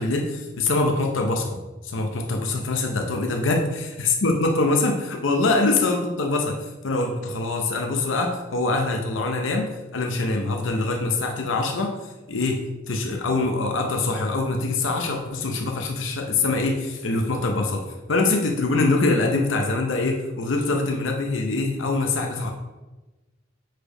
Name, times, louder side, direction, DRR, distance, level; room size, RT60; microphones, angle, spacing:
voice 1, 0.0-1.6 1.8-3.6 4.0-22.5, left 3 dB, 75° left, 2 dB, 0.7 m, -24 dB
4.9 x 4.5 x 4.9 m, 1.1 s
head